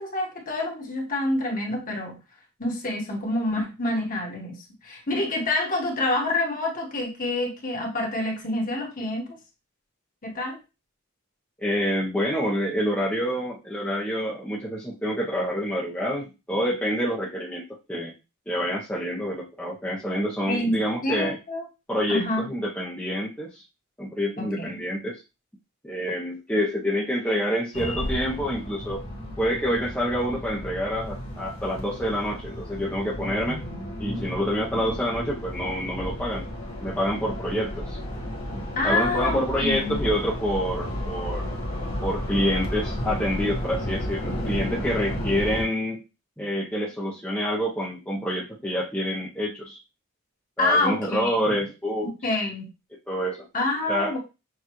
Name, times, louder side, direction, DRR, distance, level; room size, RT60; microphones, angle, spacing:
voice 1, 0.0-2.2 2.6-4.6 4.8-9.3 10.2-10.6 20.5-21.6 22.1-22.5 24.4-24.7 38.8-40.0 50.6-51.3 52.0-52.7 53.5-54.2, left 2 dB, 40° left, 0 dB, 1.3 m, -27 dB
voice 2, 11.6-17.6 17.9-18.1 18.5-21.4 21.9-23.6 24.0-25.2 25.8-29.0 29.4-33.6 34.0-36.5 36.8-38.0 38.8-41.4 42.0-46.0 46.4-49.8 50.6-52.1 53.1-53.4 53.9-54.1, equal, 5° left, -5 dB, 0.6 m, -27 dB
sound 1, 27.7-45.6, left 1 dB, 70° left, 1.3 m, -33 dB
6.6 x 2.4 x 2.9 m, 0.28 s
head